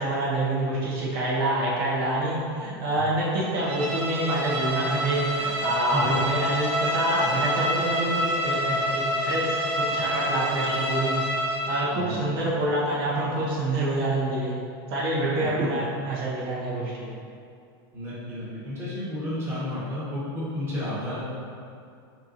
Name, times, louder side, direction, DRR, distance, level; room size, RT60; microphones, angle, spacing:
voice 1, 0.0-11.2 11.7-14.5 14.9-17.1, right 1 dB, 65° right, -7 dB, 1.2 m, -27 dB
Bowed string instrument, 3.5-11.9, equal, 45° right, 1.1 m, -27 dB
voice 2, 17.9-21.2, left 1 dB, 20° right, -10 dB, 1.5 m, -32 dB
4.5 x 4.4 x 2.6 m, 2.4 s
supercardioid pair, 145°, 13 cm